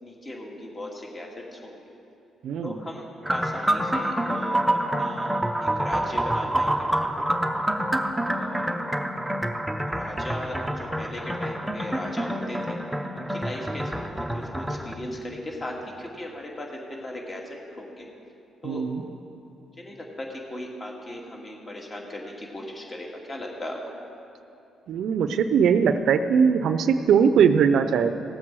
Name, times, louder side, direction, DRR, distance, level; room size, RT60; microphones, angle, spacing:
voice 1, 0.0-1.8 2.6-4.6 4.9-7.2 8.3-8.9 9.9-12.8 13.1-18.1 18.6-18.8 19.6-23.8, left 1 dB, 30° left, -1 dB, 2.4 m, -38 dB
voice 2, 2.4-2.7 18.6-19.0 24.9-28.1, right 7 dB, 75° right, 10 dB, 0.6 m, -20 dB
sound 1, 3.2-14.9, right 1 dB, 5° right, 0.8 m, -27 dB
17.5 x 7.5 x 4.8 m, 2.7 s
cardioid pair, 90°, 0 cm